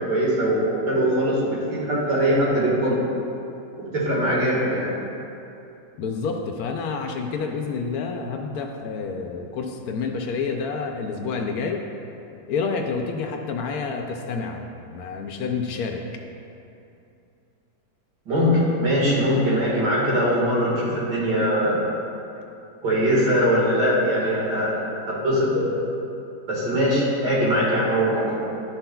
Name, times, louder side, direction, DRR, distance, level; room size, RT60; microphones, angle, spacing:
voice 1, 0.0-3.0 3.9-4.9 18.3-21.8 22.8-24.8 25.1-25.8 26.5-28.3, equal, 85° right, -6 dB, 2.3 m, -21 dB
voice 2, 6.0-11.8 12.5-14.6 14.9-16.1, left 5 dB, 70° left, 3 dB, 1.0 m, -28 dB
11.0 x 5.7 x 2.3 m, 2.7 s
omnidirectional pair, 1.8 m